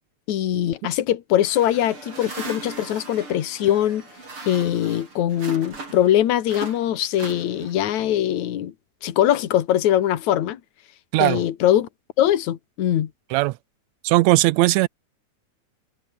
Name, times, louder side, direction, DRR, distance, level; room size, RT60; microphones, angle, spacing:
voice 1, 0.3-4.0 4.5-8.7 9.0-10.6 11.2-11.9 12.2-13.1, left 11 dB, 70° left, 2.8 m, -22 dB
sound 1, 1.4-6.1 6.4-7.9, right 3 dB, 45° right, 6.2 m, -38 dB
voice 2, 14.0-14.9, right 19 dB, 80° right, 1.7 m, -18 dB
omnidirectional pair, 3.5 m